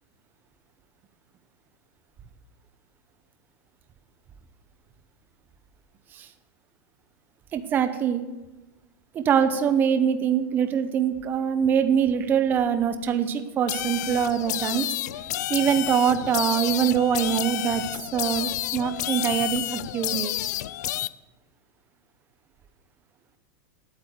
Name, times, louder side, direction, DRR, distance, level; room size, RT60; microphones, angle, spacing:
voice 1, 7.5-8.2 9.1-14.9 15.5-17.8 18.1-20.3, right 8 dB, 20° right, 9 dB, 0.7 m, -23 dB
sound 1, 13.7-21.1, left 14 dB, 70° left, 0.4 m, -30 dB
8.8 x 8.8 x 8.0 m, 1.1 s
supercardioid pair, 160°, 10 cm